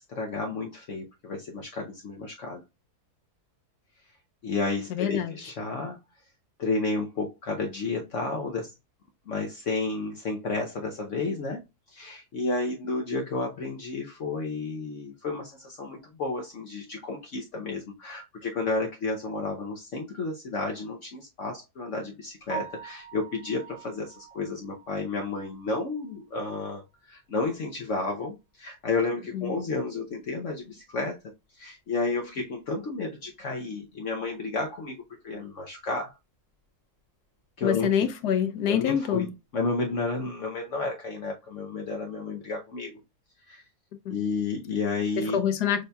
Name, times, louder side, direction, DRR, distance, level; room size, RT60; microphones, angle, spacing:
voice 1, 0.1-2.6 4.4-6.0 6.6-8.7 9.3-11.6 11.9-31.2 31.5-36.1 37.6-37.9 38.7-39.3 39.5-43.0 43.5-43.6 44.1-45.4, left 3 dB, 60° left, 1.0 m, -31 dB
voice 2, 4.9-5.4 29.3-29.5 37.6-39.3 44.1-44.2 45.3-45.8, left 8 dB, 90° left, 1.4 m, -26 dB
Piano, 22.5-26.5 26.8-26.9 27.4-27.5 27.9-28.0 31.1-31.2 39.6-39.9, right 7 dB, 25° left, 1.5 m, -44 dB
6.4 x 2.7 x 2.2 m
omnidirectional pair, 1.7 m